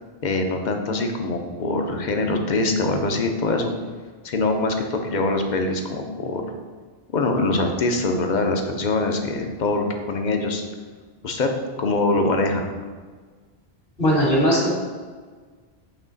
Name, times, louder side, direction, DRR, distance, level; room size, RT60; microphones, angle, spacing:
voice 1, 0.2-3.7 4.2-6.4 7.1-10.6 11.2-11.5 11.8-12.7, left 2 dB, 50° left, 4 dB, 0.7 m, -23 dB
voice 2, 14.0-14.8, equal, 75° left, -5 dB, 2.2 m, -19 dB
8.3 x 3.2 x 3.9 m, 1.5 s
omnidirectional pair, 1.1 m